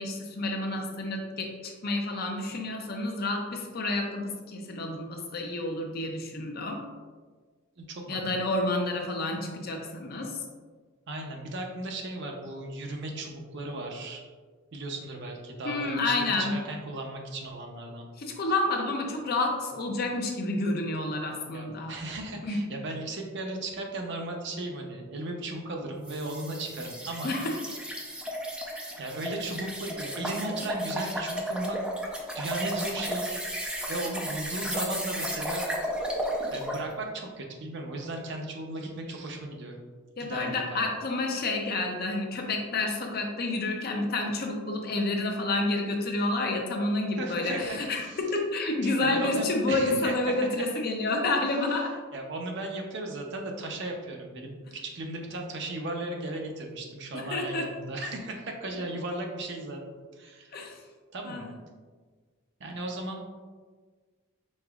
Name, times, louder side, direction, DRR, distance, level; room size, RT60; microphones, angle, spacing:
voice 1, 0.0-6.8 8.1-10.4 15.6-16.6 18.2-21.9 22.4-22.6 27.2-27.6 40.2-51.9 57.1-57.7 60.5-60.8 61.2-61.5, left 2 dB, 50° left, 2 dB, 0.6 m, -29 dB
voice 2, 7.8-8.5 11.1-14.3 14.7-18.1 21.5-27.3 28.7-31.8 32.3-33.3 33.9-35.7 36.5-39.8 40.2-40.9 47.2-48.2 48.8-50.3 52.1-59.8 60.1-60.5 61.1-61.4 62.6-63.3, right 2 dB, 60° right, 1 dB, 0.7 m, -36 dB
sound 1, 26.0-36.9, equal, 5° right, 0.5 m, -34 dB
5.2 x 3.9 x 2.4 m, 1.5 s
head